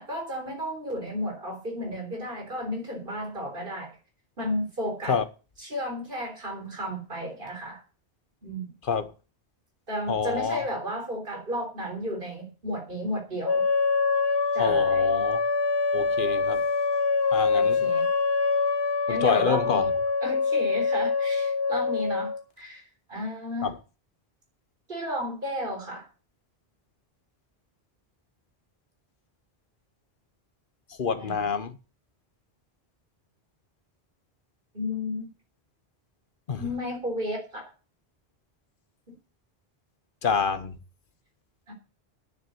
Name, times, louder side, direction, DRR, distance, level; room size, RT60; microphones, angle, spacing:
voice 1, 0.0-3.9 4.4-5.2 5.6-7.8 8.4-8.7 9.9-13.7 14.5-15.1 17.5-18.1 19.1-19.9 20.2-22.3 22.6-22.8 23.1-23.7 24.9-26.1 31.2-31.5 34.7-35.3 36.6-37.6 41.7-41.8, equal, 55° right, 4.1 m, -33 dB
voice 2, 10.1-10.6 14.6-15.4 15.9-16.7 17.3-17.9 19.1-19.9 23.6-23.7 31.0-31.8 36.5-36.7 40.2-40.8, left 6 dB, 55° left, 1.2 m, -27 dB
sound 1, 13.4-22.4, left 4 dB, 75° left, 1.4 m, -25 dB
9.6 x 7.6 x 7.9 m
omnidirectional pair, 1.1 m